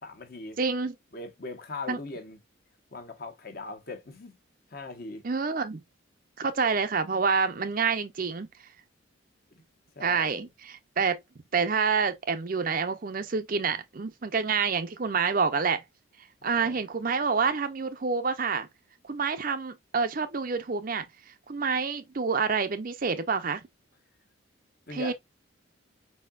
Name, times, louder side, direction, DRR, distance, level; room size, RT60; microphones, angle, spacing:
voice 1, 0.0-0.6 1.1-2.4 2.9-4.4 4.7-5.3 9.6-9.7 9.9-10.5 16.4-16.8 24.9-25.1, left 3 dB, 45° left, 1.0 m, -40 dB
voice 2, 0.6-0.9 1.9-2.0 5.2-5.8 6.4-8.5 10.0-11.2 11.5-15.8 16.4-18.7 19.0-21.0 21.5-23.6 24.9-25.1, right 5 dB, 40° right, 0.5 m, -27 dB
4.7 x 4.2 x 2.4 m
head